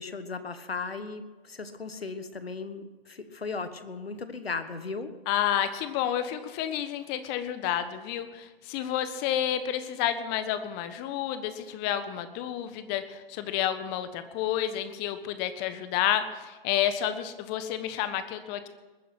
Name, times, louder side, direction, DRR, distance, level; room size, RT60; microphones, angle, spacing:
voice 1, 0.0-5.1, left 4 dB, 90° left, 10 dB, 1.4 m, -36 dB
voice 2, 5.3-18.7, left 10 dB, 35° left, 10 dB, 1.4 m, -30 dB
21.0 x 10.0 x 6.0 m, 1.2 s
figure-of-eight pair, 110°, 29 cm